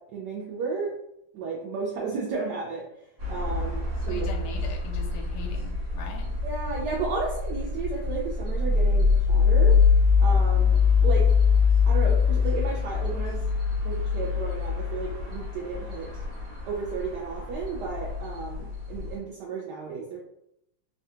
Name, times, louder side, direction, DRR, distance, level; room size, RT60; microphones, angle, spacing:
voice 1, 0.1-0.9 1.3-2.8 3.3-4.3 6.4-9.8 10.2-11.3 11.9-13.4 13.8-16.1 16.7-20.2, right 4 dB, 75° right, -3 dB, 1.0 m, -33 dB
sound 1, 3.2-19.2, left 5 dB, 50° right, 0.7 m, -24 dB
voice 2, 4.0-6.3, left 5 dB, 70° left, 2 dB, 1.0 m, -41 dB
3.3 x 2.2 x 2.7 m, 0.78 s
omnidirectional pair, 2.2 m